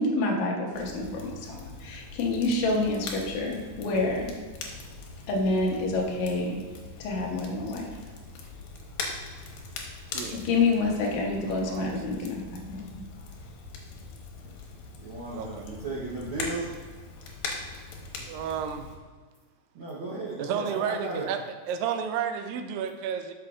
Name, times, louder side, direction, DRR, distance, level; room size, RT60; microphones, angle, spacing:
voice 1, 0.0-4.4 5.3-6.6 7.0-7.9 10.3-13.0, left 2 dB, 65° left, -1 dB, 2.1 m, -28 dB
Crackle, 0.7-19.0, left 3 dB, 85° left, 2.6 m, -41 dB
voice 2, 11.4-11.9 15.4-15.7 18.3-18.9 19.8-19.9 20.4-21.4 21.7-23.3, right 8 dB, 90° right, 7 dB, 2.3 m, -32 dB
voice 3, 15.0-16.7 19.7-21.3, right 2 dB, 70° right, -8 dB, 1.2 m, -35 dB
11.0 x 5.9 x 2.5 m, 1.4 s
omnidirectional pair, 3.9 m